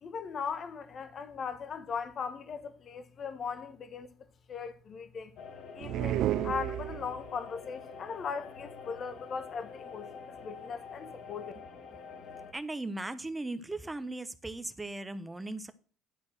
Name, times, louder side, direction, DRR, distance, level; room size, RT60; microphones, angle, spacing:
voice 1, 0.0-4.1 4.5-5.3 5.7-11.5, left 6 dB, 45° left, 1.3 m, -39 dB
sound 1, 5.4-12.5, left 5 dB, 65° left, 1.8 m, -47 dB
sound 2, 5.8-7.4, right 13 dB, 65° right, 0.4 m, -32 dB
voice 2, 12.5-15.7, right 2 dB, 15° right, 0.9 m, -38 dB
11.0 x 4.3 x 7.4 m
supercardioid pair, 75°, 0 cm